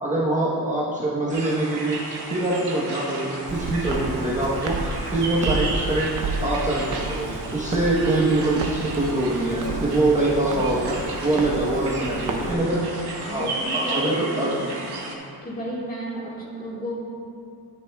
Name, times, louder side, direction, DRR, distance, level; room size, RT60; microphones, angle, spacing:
voice 1, 0.0-6.1 6.4-12.8 13.2-14.5, right 2 dB, 20° right, -7 dB, 1.0 m, -24 dB
sound 1, 1.3-15.2, right 3 dB, 80° right, 1.4 m, -34 dB
Walk footsteps, 3.5-12.5, right 3 dB, 50° right, 0.8 m, -31 dB
voice 2, 10.4-11.4 12.4-12.8 13.2-14.7 15.4-17.0, equal, 20° left, -5 dB, 1.8 m, -34 dB
11.5 x 9.9 x 2.3 m, 2.5 s
wide cardioid pair, 160°, 39 cm